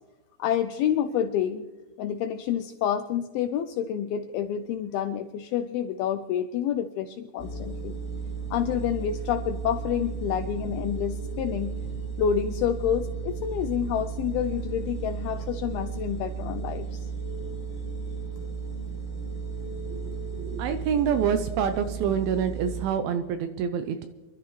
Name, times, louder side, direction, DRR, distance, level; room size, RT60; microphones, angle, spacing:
voice 1, 0.4-1.6 2.0-7.9 8.5-11.7 12.2-17.1, left 9 dB, 85° left, 9 dB, 2.2 m, -28 dB
sound 1, 7.4-22.9, right 5 dB, 15° left, 1.5 m, -34 dB
voice 2, 20.4-24.1, right 7 dB, 85° right, 9 dB, 2.1 m, -27 dB
27.5 x 12.0 x 3.1 m, 1.3 s
omnidirectional pair, 4.9 m